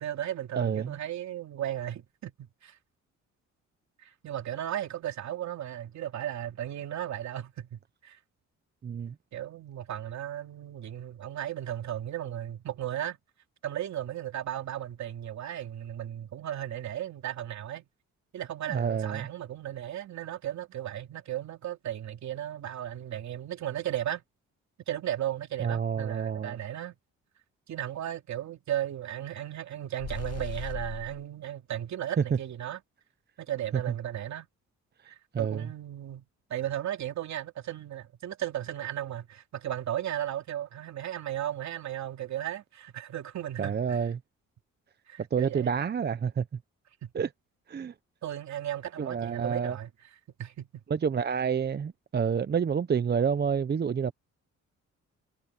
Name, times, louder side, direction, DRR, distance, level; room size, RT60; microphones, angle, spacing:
voice 1, 0.0-2.8 4.0-8.2 9.3-13.2 13.6-17.8 18.3-24.2 24.9-27.0 27.7-32.8 33.4-34.5 35.1-36.2 36.5-44.0 45.1-45.7 48.2-49.9 50.4-50.8, right 11 dB, 65° right, 3.0 m, -35 dB
voice 2, 0.6-0.9 8.8-9.1 18.7-19.3 25.6-26.6 35.3-35.6 43.6-44.2 45.3-46.4 47.1-47.3 47.7-47.9 49.0-49.8 50.9-54.1, right 7 dB, 35° right, 0.8 m, -28 dB
sound 1, 30.0-31.2, left 8 dB, 55° left, 2.0 m, -38 dB
cardioid pair, 90°, 30 cm